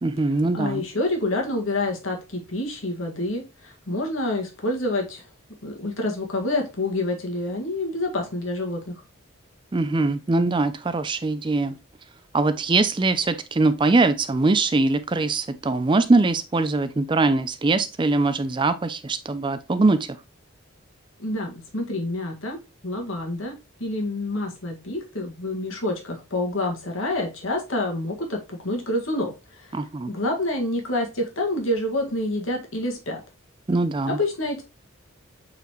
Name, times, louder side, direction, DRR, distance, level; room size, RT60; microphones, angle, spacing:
voice 1, 0.0-0.8 9.7-11.7 12.3-20.0 29.7-30.1 33.7-34.2, right 3 dB, 25° right, 0.4 m, -22 dB
voice 2, 0.5-5.2 5.6-9.0 21.2-29.8 30.1-33.2 34.1-34.6, left 1 dB, 75° left, 1.9 m, -28 dB
8.2 x 4.1 x 3.0 m
head